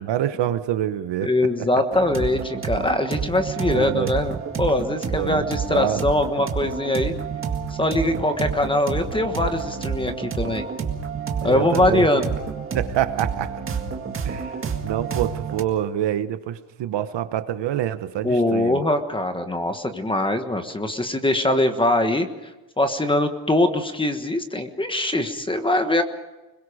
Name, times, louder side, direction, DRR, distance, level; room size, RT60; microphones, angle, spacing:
voice 1, 0.0-1.3 1.6-1.7 3.6-4.1 5.1-6.0 11.4-12.2 12.7-13.6 14.2-14.6 14.8-18.8, right 11 dB, 60° right, 11 dB, 1.2 m, -26 dB
voice 2, 1.2-7.1 7.8-10.6 11.4-12.3 18.2-22.3 22.8-26.0, left 1 dB, 10° left, 7 dB, 1.4 m, -22 dB
sound 1, 1.9-15.6, right 6 dB, 25° right, 2.0 m, -29 dB
30.0 x 22.0 x 5.1 m, 1.1 s
cardioid pair, 175°, 49 cm